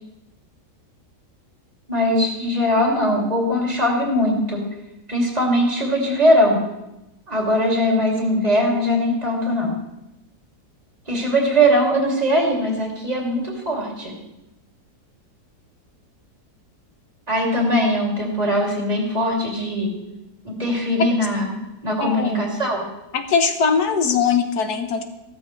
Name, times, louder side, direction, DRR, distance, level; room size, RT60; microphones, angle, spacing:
voice 1, 1.9-4.6 5.1-6.7 7.3-9.7 11.1-14.1 17.3-19.9 20.4-22.9, equal, 25° right, -2 dB, 3.0 m, -20 dB
voice 2, 22.0-22.5 23.1-25.0, left 6 dB, 70° left, 7 dB, 1.6 m, -21 dB
15.5 x 13.0 x 3.3 m, 0.93 s
omnidirectional pair, 1.8 m